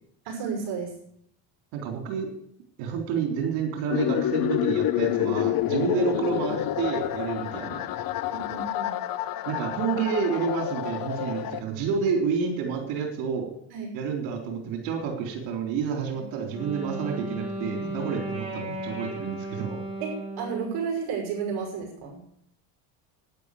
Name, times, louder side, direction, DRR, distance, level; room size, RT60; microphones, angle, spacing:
voice 1, 0.2-0.9 5.9-6.0 8.3-8.9 13.7-13.9 16.1-16.2 20.0-22.2, right 6 dB, 50° right, 0 dB, 6.0 m, -32 dB
voice 2, 1.7-2.3 2.8-7.8 9.5-13.5 13.9-19.8, right 6 dB, 75° right, 3 dB, 3.9 m, -29 dB
sound 1, 3.9-11.6, left 12 dB, 45° left, 0.9 m, -28 dB
Wind instrument woodwind instrument, 16.3-20.8, right 1 dB, 10° right, 6.1 m, -35 dB
12.0 x 10.0 x 8.4 m, 0.69 s
cardioid pair, 125°, 47 cm